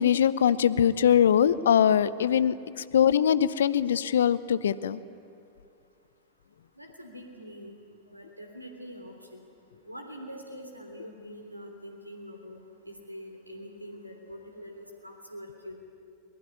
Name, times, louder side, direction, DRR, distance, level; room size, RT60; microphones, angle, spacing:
voice 1, 0.0-5.0, left 9 dB, 65° left, 18 dB, 0.7 m, -22 dB
voice 2, 6.8-7.7 8.1-9.4 9.8-15.8, equal, 85° right, 4 dB, 3.3 m, -44 dB
21.5 x 21.0 x 9.6 m, 2.5 s
figure-of-eight pair, 90°, 0 cm